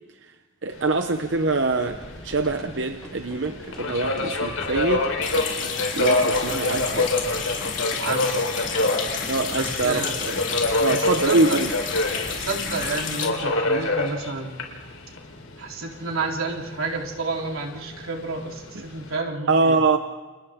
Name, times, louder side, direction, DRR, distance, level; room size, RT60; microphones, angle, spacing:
voice 1, 0.6-5.1 6.0-7.1 9.3-10.4 10.8-11.7 19.5-20.0, right 3 dB, 60° right, 7 dB, 0.9 m, -24 dB
Subway metro underground, 0.7-19.2, left 2 dB, 80° left, 4.2 m, -28 dB
sound 1, 1.9-14.7, equal, 5° left, 4.6 m, -43 dB
Water tap faucet, 5.2-13.3, left 6 dB, 60° left, 4.1 m, -30 dB
voice 2, 8.0-8.5 9.5-10.3 10.9-11.6 12.4-14.6 15.6-19.8, right 3 dB, 90° right, 0 dB, 3.8 m, -30 dB
30.0 x 29.0 x 3.7 m, 1.3 s
head